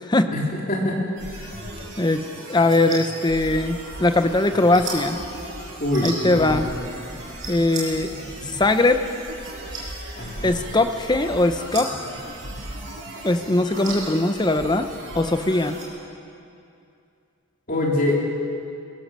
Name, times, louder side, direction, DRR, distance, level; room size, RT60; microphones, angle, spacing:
sound 1, 1.2-15.8, right 2 dB, 60° right, 6.6 m, -35 dB
voice 1, 2.5-5.2 6.0-6.7 7.5-8.1 8.6-9.0 10.4-11.9 13.2-14.9 15.1-15.8, left 2 dB, 20° left, 8 dB, 0.8 m, -20 dB
voice 2, 5.8-6.6 10.2-10.6 17.7-18.2, left 1 dB, 40° left, -2 dB, 3.5 m, -24 dB
20.5 x 17.0 x 7.5 m, 2.6 s
head